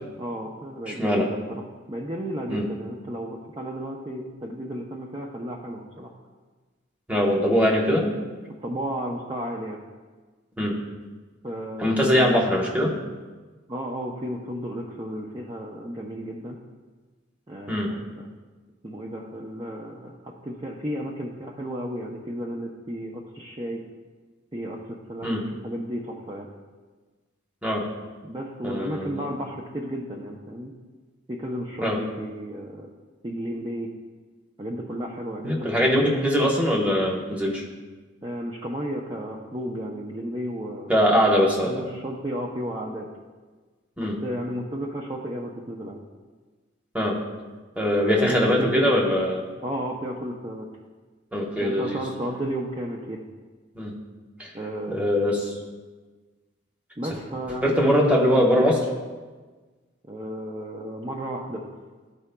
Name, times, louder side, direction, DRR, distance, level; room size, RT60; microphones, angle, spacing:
voice 1, 0.2-1.6 1.9-6.1 8.6-9.8 11.4-12.4 13.7-16.6 17.5-18.3 18.8-23.8 24.5-26.5 28.2-30.7 31.3-32.9 33.2-33.9 34.6-35.9 36.4-36.5 38.2-40.9 41.4-43.1 44.0-46.0 47.9-48.9 49.6-50.7 51.6-53.2 54.5-55.1 57.0-58.7 60.1-61.7, equal, 25° right, -2 dB, 0.5 m, -33 dB
voice 2, 0.9-1.3 2.5-2.6 7.1-8.1 10.6-10.8 11.8-13.0 17.7-17.9 25.2-25.4 27.6-27.8 28.6-29.3 31.8-32.0 35.4-37.6 40.9-41.7 44.0-44.2 46.9-47.2 47.8-49.4 51.3-52.0 53.7-53.9 54.4-54.5 54.9-55.5 57.6-58.8, equal, 5° right, -2 dB, 1.1 m, -22 dB
14.0 x 4.7 x 2.2 m, 1.4 s
head